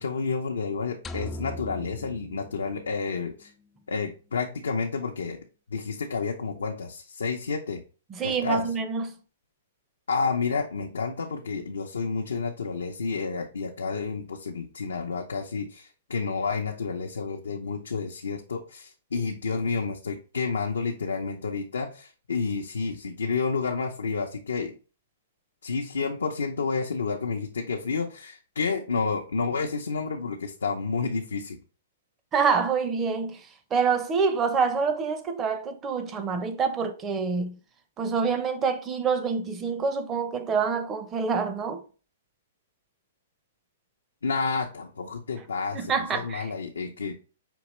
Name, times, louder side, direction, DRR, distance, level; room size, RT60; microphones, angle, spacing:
voice 1, 0.0-3.5 3.9-5.4 5.7-7.8 8.2-8.6 10.1-24.7 25.6-31.6 44.2-47.1, left 4 dB, 90° left, 0.6 m, -30 dB
sound 1, 1.0-3.3, left 1 dB, 15° left, 0.3 m, -40 dB
voice 2, 8.1-9.2 32.3-37.6 38.0-41.8 45.7-46.5, right 5 dB, 20° right, 0.7 m, -26 dB
5.2 x 2.9 x 3.2 m
hypercardioid pair, 130°, 0 cm